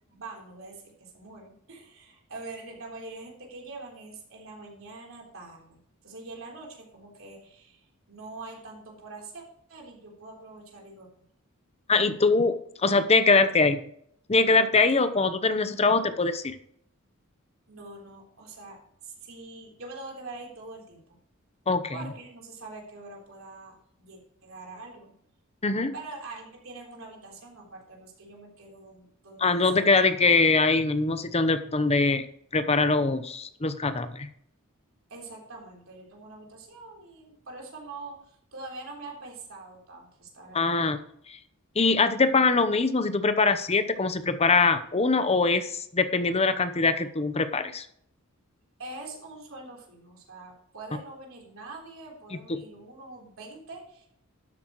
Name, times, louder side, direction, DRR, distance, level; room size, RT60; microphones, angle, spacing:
voice 1, 0.1-9.4 9.7-11.1 15.4-15.8 17.7-21.2 21.9-25.1 25.9-30.2 35.1-40.8 48.8-54.1, right 3 dB, 70° right, 0 dB, 3.6 m, -44 dB
voice 2, 11.9-12.6 12.8-13.8 14.3-16.5 21.7-22.1 25.6-25.9 29.4-32.2 32.5-34.3 40.5-41.0 41.3-41.4 41.8-47.9 52.5-52.6, left 3 dB, 30° left, 11 dB, 0.8 m, -23 dB
12.0 x 8.6 x 3.1 m, 0.69 s
head